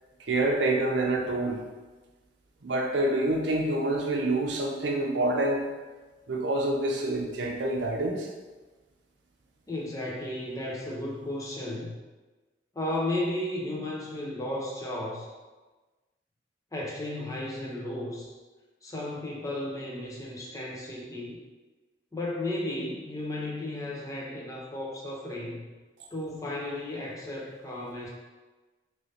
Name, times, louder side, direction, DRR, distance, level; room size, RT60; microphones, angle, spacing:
voice 1, 0.2-1.6 2.6-5.7 6.3-8.3, right 2 dB, 80° right, 1 dB, 0.5 m, -27 dB
voice 2, 9.7-11.9 12.8-15.3 16.7-18.3 18.8-21.4 22.1-25.7 26.1-28.1, left 1 dB, 20° left, -4 dB, 0.5 m, -34 dB
3.1 x 3.0 x 2.7 m, 1.2 s
head